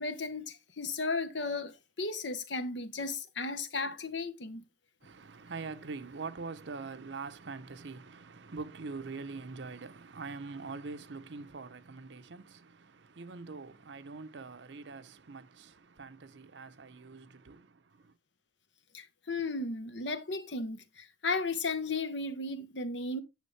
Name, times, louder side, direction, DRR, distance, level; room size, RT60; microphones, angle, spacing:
voice 1, 0.0-4.6 18.9-23.2, left 3 dB, 85° left, 1.1 m, -35 dB
voice 2, 5.0-18.1, right 4 dB, 80° right, 0.7 m, -44 dB
9.4 x 6.5 x 3.2 m
head